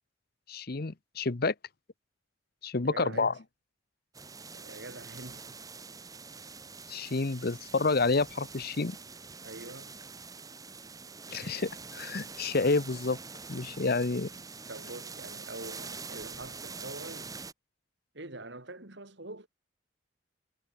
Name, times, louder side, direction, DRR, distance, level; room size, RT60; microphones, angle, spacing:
voice 1, 0.5-1.5 2.6-3.3 6.9-9.0 11.3-13.2 13.5-14.3, left 3 dB, 50° left, 0.8 m, -29 dB
voice 2, 2.8-3.4 4.5-5.5 9.4-9.9 14.7-17.3 18.1-19.5, right 2 dB, 60° right, 2.9 m, -44 dB
sound 1, 4.1-17.5, right 4 dB, 20° right, 1.4 m, -45 dB
head